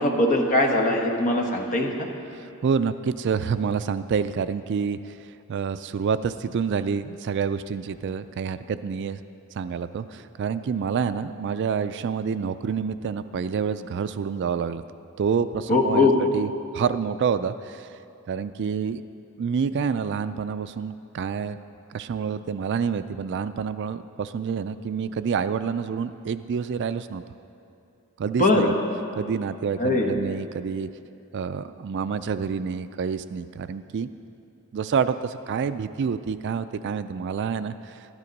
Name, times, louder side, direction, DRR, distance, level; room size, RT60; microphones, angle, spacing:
voice 1, 0.0-2.1 15.7-16.2 28.4-28.7 29.8-30.1, left 2 dB, 35° left, 1 dB, 1.2 m, -21 dB
voice 2, 2.6-5.0 5.5-9.2 9.6-14.8 15.2-17.9 18.3-19.0 19.4-21.6 21.9-27.2 28.2-28.7 29.2-30.9 31.3-34.1 34.7-37.7, right 6 dB, 50° right, 12 dB, 0.3 m, -28 dB
13.0 x 11.5 x 5.2 m, 2.6 s
head